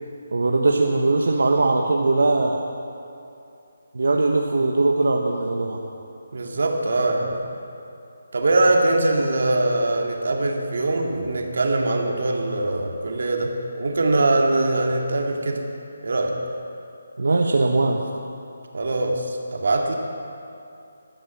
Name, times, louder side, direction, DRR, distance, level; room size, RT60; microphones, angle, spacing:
voice 1, 0.3-2.6 3.9-5.8 17.2-18.0, right 3 dB, 75° right, 1 dB, 1.3 m, -20 dB
voice 2, 6.3-7.5 8.3-15.6 16.0-16.4 18.7-19.9, right 2 dB, 55° right, 2 dB, 2.1 m, -22 dB
16.0 x 12.5 x 7.1 m, 2.7 s
hypercardioid pair, 180°, 0 cm